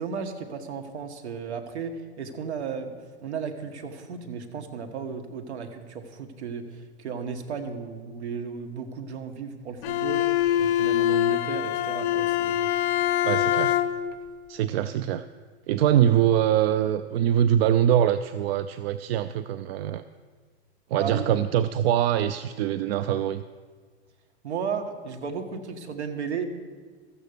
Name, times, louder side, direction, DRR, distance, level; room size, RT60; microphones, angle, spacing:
voice 1, 0.0-2.9 3.2-12.7 13.2-13.7 20.9-21.3 24.4-26.5, right 6 dB, 85° right, 6 dB, 1.5 m, -34 dB
Bowed string instrument, 9.8-14.2, left 12 dB, 55° left, 0.7 m, -24 dB
voice 2, 13.3-13.7 14.5-15.3 15.7-20.0 20.9-23.4, right 10 dB, 65° right, 13 dB, 0.5 m, -23 dB
13.5 x 8.0 x 6.8 m, 1.5 s
hypercardioid pair, 125°, 33 cm